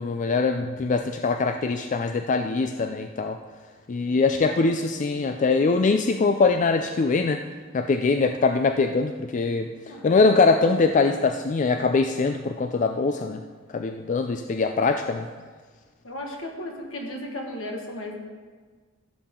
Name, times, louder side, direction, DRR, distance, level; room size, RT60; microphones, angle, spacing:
voice 1, 0.0-3.4 3.9-7.4 7.7-13.4 13.7-15.3, left 4 dB, 40° left, 6 dB, 0.4 m, -23 dB
voice 2, 4.0-4.7 9.8-10.5 16.0-18.2, left 1 dB, 75° left, 1 dB, 1.6 m, -36 dB
15.0 x 7.2 x 3.7 m, 1.5 s
head